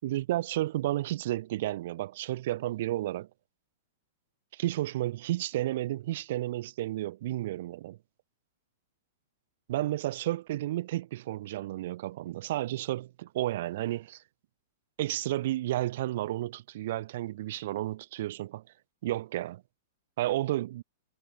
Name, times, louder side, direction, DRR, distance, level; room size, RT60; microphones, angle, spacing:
voice 1, 0.0-3.3 4.5-8.0 9.7-14.2 15.0-18.6 19.0-19.6 20.2-20.8, right 15 dB, 60° right, 1.6 m, -32 dB
hypercardioid pair, 125°, 0 cm